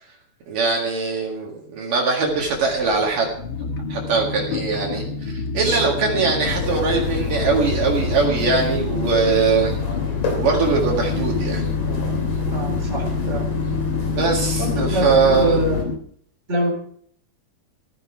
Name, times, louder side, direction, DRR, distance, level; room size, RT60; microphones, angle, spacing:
voice 1, 0.5-3.3 3.9-9.8 10.4-11.6 14.1-15.6, right 4 dB, 60° right, -1 dB, 3.4 m, -21 dB
sound 1, 2.2-16.0, left 2 dB, 85° left, 1.1 m, -28 dB
sound 2, 6.4-15.8, left 8 dB, 50° left, 4.4 m, -28 dB
voice 2, 12.5-13.5 14.6-15.0 15.3-15.8 16.5-16.7, right 1 dB, 20° right, 1 dB, 3.9 m, -24 dB
15.5 x 14.5 x 4.8 m, 0.62 s
omnidirectional pair, 4.4 m